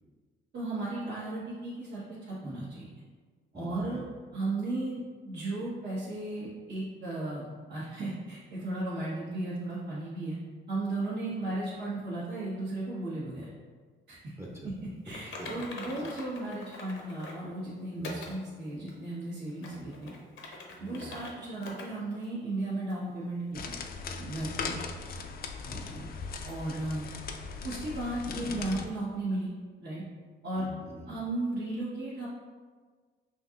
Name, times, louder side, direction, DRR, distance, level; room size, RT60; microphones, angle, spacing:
voice 1, 0.5-2.9 3.5-4.0 4.3-10.4 10.7-13.5 14.1-14.2 15.0-20.1 20.8-23.7 24.2-24.8 26.4-27.1 27.6-29.5 29.8-30.0 30.4-30.7 31.1-32.3, right 2 dB, 60° right, -10 dB, 1.2 m, -35 dB
voice 2, 3.5-4.0 14.4-14.7 15.4-15.5 15.9-16.0 18.0-18.2 19.7-19.9 20.8-21.1 25.6-26.1 30.5-31.1, equal, 15° right, -2 dB, 0.7 m, -45 dB
Typing, 15.1-17.4 18.0-18.4 18.9-19.0 19.5-21.3 21.6-21.9 22.2-22.3 22.9-23.0, left 3 dB, 75° left, 0.8 m, -43 dB
sound 1, 23.5-28.9, left 5 dB, 50° left, 0.4 m, -38 dB
5.7 x 2.8 x 2.4 m, 1.5 s
cardioid pair, 90°, 20 cm